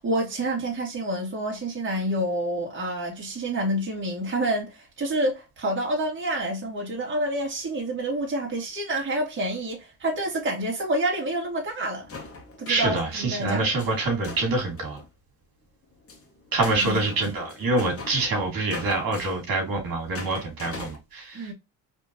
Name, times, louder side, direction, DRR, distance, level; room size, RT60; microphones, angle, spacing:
voice 1, 0.0-12.1 12.6-13.6 16.6-17.0 21.3-21.5, right 1 dB, 25° right, 2.3 m, -28 dB
sound 1, 12.0-13.0 13.8-15.1 15.8-21.0, left 3 dB, 30° left, 1.7 m, -42 dB
voice 2, 12.7-15.0 16.5-21.5, right 2 dB, 50° right, 2.6 m, -26 dB
4.3 x 3.5 x 2.9 m
supercardioid pair, 85°, 43 cm